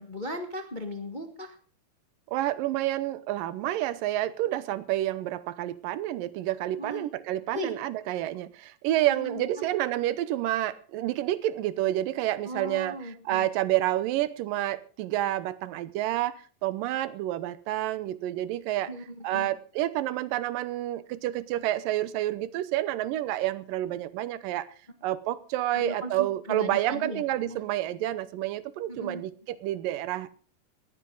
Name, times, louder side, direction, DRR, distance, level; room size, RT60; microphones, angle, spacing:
voice 1, 0.0-1.5 6.8-7.1 7.5-7.7 9.1-9.7 12.4-13.5 18.9-19.5 25.7-27.6 28.9-29.2, left 1 dB, 35° left, 5 dB, 0.7 m, -37 dB
voice 2, 2.3-18.9 19.2-24.7 25.0-30.3, right 14 dB, 85° right, 16 dB, 2.5 m, -29 dB
19.0 x 14.5 x 3.9 m, 0.39 s
omnidirectional pair, 3.8 m